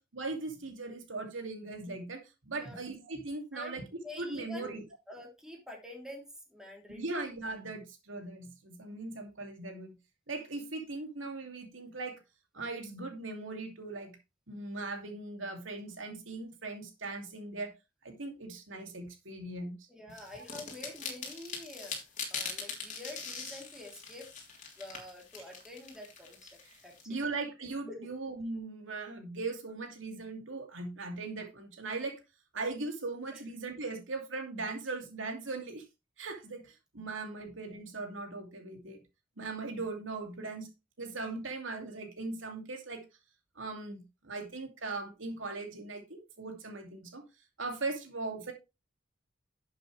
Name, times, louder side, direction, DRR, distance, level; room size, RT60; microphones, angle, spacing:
voice 1, 0.0-4.8 6.9-10.0 10.3-12.2 12.5-14.2 14.5-17.7 18.0-19.9 20.3-20.4 26.6-26.8 27.1-32.2 32.5-35.8 36.2-39.0 39.4-40.7 41.0-43.0 43.6-47.2 47.6-48.5, right 3 dB, 85° right, 2.6 m, -39 dB
voice 2, 4.0-4.8 5.1-6.2 6.5-7.0 19.9-21.9 22.3-24.3 24.8-26.5 26.8-27.2 27.9-28.0 33.3-33.4, left 1 dB, 5° right, 3.2 m, -47 dB
sound 1, 20.2-27.0, left 5 dB, 40° left, 3.3 m, -42 dB
11.5 x 7.5 x 3.3 m
head